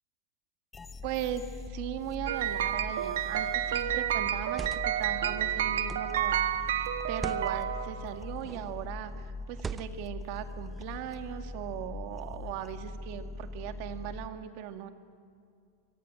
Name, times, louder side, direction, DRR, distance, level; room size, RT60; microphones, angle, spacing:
sound 1, 0.7-14.3, left 3 dB, 10° left, 0.9 m, -42 dB
voice 1, 1.0-14.9, right 10 dB, 45° right, 7 dB, 2.0 m, -38 dB
sound 2, 2.3-8.3, right 11 dB, 80° right, 1.5 m, -30 dB
sound 3, 3.2-3.5 4.3-5.1 5.9-6.2 7.1-7.5 8.4-8.8 9.5-10.2, right 5 dB, 10° right, 0.6 m, -40 dB
25.5 x 24.0 x 8.9 m, 2.4 s
supercardioid pair, 165°, 0 cm